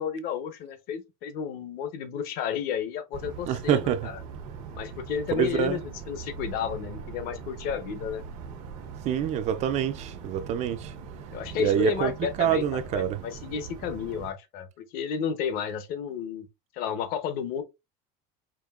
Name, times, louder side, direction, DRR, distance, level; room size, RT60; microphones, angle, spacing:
voice 1, 0.0-4.2 4.7-8.2 11.3-16.5 16.7-17.6, left 8 dB, 55° left, 0.8 m, -32 dB
sound 1, 3.1-14.3, right 6 dB, 90° right, 1.0 m, -41 dB
voice 2, 3.5-4.1 5.4-5.8 9.1-10.9 11.6-12.1 12.4-13.2, right 9 dB, 40° right, 0.4 m, -26 dB
5.2 x 2.8 x 2.3 m
cardioid pair, 165°, 18 cm